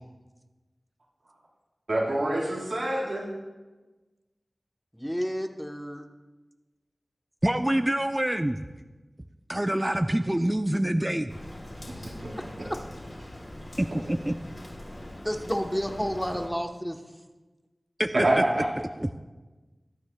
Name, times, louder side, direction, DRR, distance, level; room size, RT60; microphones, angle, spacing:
voice 1, 1.9-3.3 12.2-12.3 18.1-18.7, right 1 dB, 90° right, -6 dB, 4.3 m, -25 dB
voice 2, 4.9-6.1 11.9-12.0 12.6-12.8 15.2-17.0, equal, 5° left, 3 dB, 1.0 m, -31 dB
voice 3, 7.4-8.6 9.5-11.3 13.8-14.3 18.0-18.1 19.0-19.1, right 1 dB, 20° right, 7 dB, 0.5 m, -26 dB
Rain, 11.3-16.5, left 1 dB, 40° left, 3.7 m, -42 dB
22.0 x 9.5 x 2.3 m, 1.2 s
wide cardioid pair, 40°, 0 cm